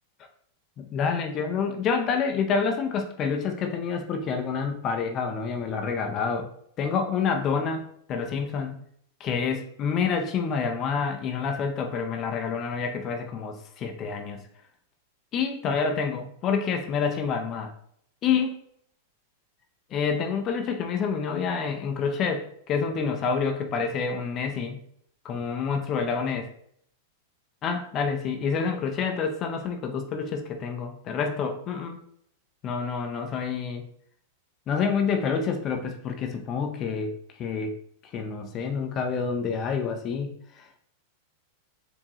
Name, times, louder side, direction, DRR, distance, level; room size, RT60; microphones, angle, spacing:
voice 1, 0.9-6.5 6.8-8.8 9.2-14.4 15.3-17.7 18.2-18.6 19.9-24.8 25.2-26.5 27.6-32.0 32.6-33.8 34.7-37.8 38.1-40.8, left 5 dB, 30° left, 5 dB, 0.6 m, -28 dB
4.5 x 3.6 x 2.9 m, 0.68 s
supercardioid pair, 140°, 0 cm